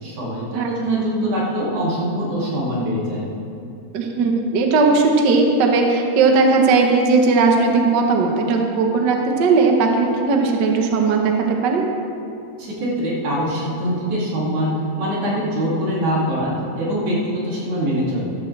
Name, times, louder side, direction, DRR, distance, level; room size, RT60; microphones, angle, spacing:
voice 1, 0.0-3.3 12.6-18.2, equal, 65° right, -6 dB, 4.0 m, -23 dB
voice 2, 3.9-11.8, right 4 dB, 85° right, 1 dB, 0.9 m, -17 dB
14.5 x 13.0 x 3.3 m, 2.6 s
omnidirectional pair, 3.7 m